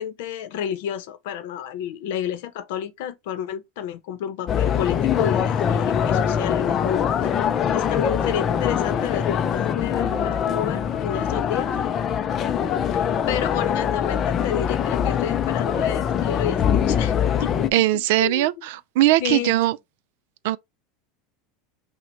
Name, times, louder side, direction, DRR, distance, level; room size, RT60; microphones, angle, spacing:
voice 1, 0.0-7.5 7.7-11.8 12.9-18.5 19.2-19.5, left 10 dB, 65° left, 0.7 m, -31 dB
sound 1, 4.5-17.7, left 8 dB, 25° left, 0.4 m, -23 dB
voice 2, 17.7-19.8 20.4-20.6, right 15 dB, 65° right, 0.3 m, -20 dB
6.0 x 2.2 x 3.1 m
supercardioid pair, 160°, 0 cm